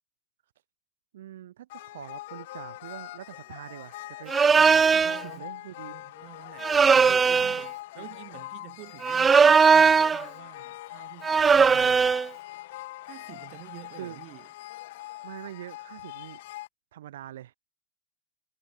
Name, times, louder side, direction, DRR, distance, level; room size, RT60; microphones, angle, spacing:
voice 1, 1.1-6.0 6.9-7.6 8.0-8.1 11.4-12.0 14.0-14.2 15.2-16.4 16.9-17.5, right 12 dB, 70° right, 6.3 m, -44 dB
sound 1, 1.7-16.7, left 17 dB, 65° left, 1.5 m, -43 dB
sound 2, 4.3-5.2 6.6-7.7 9.0-10.2 11.2-12.3, right 5 dB, 20° right, 0.8 m, -19 dB
voice 2, 4.9-5.5 5.9-6.7 7.0-12.1 13.0-14.5, right 25 dB, 50° right, 6.0 m, -48 dB
hypercardioid pair, 95°, 0 cm